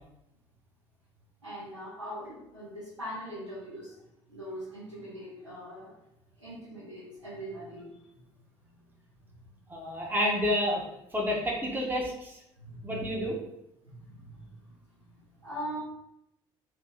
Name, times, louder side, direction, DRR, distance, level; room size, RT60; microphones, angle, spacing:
voice 1, 1.4-4.0 4.3-5.9 6.4-8.2 8.6-8.7 12.6-13.2 13.8-14.7 15.1-15.8, equal, 90° right, -10 dB, 0.9 m, -42 dB
voice 2, 9.7-10.8 11.1-12.4 12.8-13.4, equal, 10° right, -2 dB, 0.9 m, -29 dB
2.8 x 2.7 x 3.8 m, 0.84 s
figure-of-eight pair, 55°, 15 cm